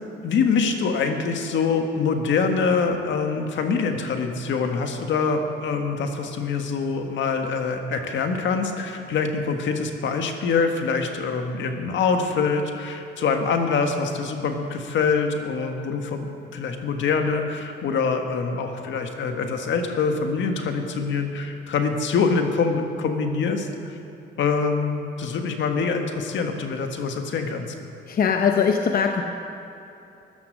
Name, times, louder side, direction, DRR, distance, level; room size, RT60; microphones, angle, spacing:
voice 1, 0.2-23.9 24.4-27.7, left 5 dB, 70° left, 5 dB, 1.5 m, -24 dB
voice 2, 28.1-29.2, left 6 dB, 50° left, 5 dB, 0.8 m, -21 dB
14.5 x 11.5 x 6.5 m, 2.9 s
cardioid pair, 90°, 20 cm